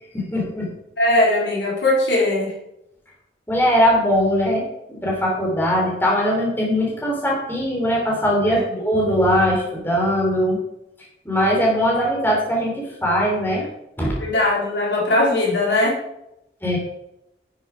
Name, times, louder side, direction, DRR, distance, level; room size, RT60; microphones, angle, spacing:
voice 1, 0.1-0.7 3.5-10.6 11.2-13.7 14.0-14.2 16.6-16.8, equal, 10° left, -3 dB, 3.3 m, -20 dB
voice 2, 1.0-2.5 8.5-8.8 14.2-16.0, left 2 dB, 80° left, -3 dB, 3.7 m, -20 dB
10.5 x 7.6 x 5.0 m, 0.85 s
head